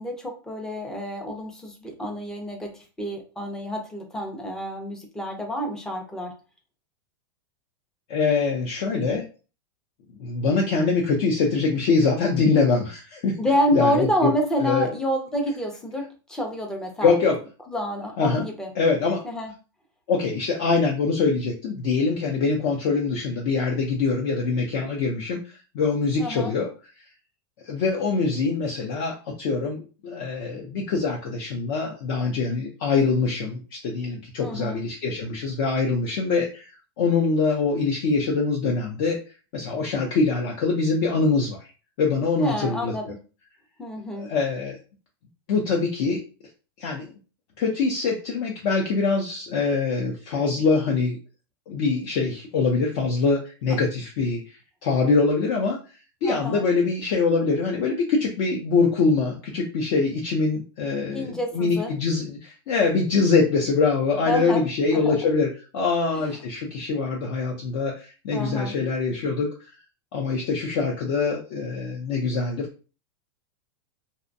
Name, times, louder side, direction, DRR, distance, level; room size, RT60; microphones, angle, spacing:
voice 1, 0.0-6.3 13.4-17.1 17.7-18.7 19.2-19.5 26.2-26.5 34.4-34.8 42.4-43.2 43.8-44.3 56.2-56.6 61.1-61.9 64.2-64.6 64.9-65.2 68.3-68.8, equal, 5° left, 3 dB, 0.4 m, -28 dB
voice 2, 8.1-9.2 10.2-13.4 13.7-14.3 14.6-14.9 17.0-17.4 18.2-19.2 20.1-26.7 27.6-36.7 37.0-39.2 39.5-41.6 42.0-43.1 44.2-44.8 45.5-46.2 46.8-47.1 47.6-51.2 51.7-54.5 54.8-55.8 56.2-69.5 70.1-72.7, left 4 dB, 50° left, -1 dB, 0.5 m, -24 dB
2.5 x 2.1 x 2.6 m, 0.35 s
supercardioid pair, 160°, 13 cm